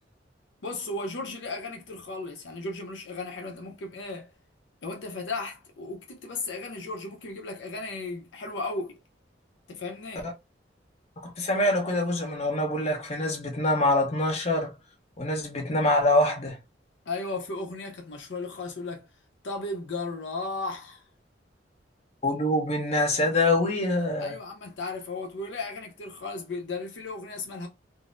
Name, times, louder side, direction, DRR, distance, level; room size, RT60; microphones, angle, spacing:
voice 1, 0.6-4.3 4.8-9.0 9.7-10.3 17.1-19.1 19.4-21.0 24.2-27.7, left 3 dB, 75° left, 0.6 m, -35 dB
voice 2, 11.2-14.7 15.2-16.6 22.2-24.3, left 1 dB, 35° left, 0.9 m, -25 dB
3.8 x 2.0 x 2.4 m
head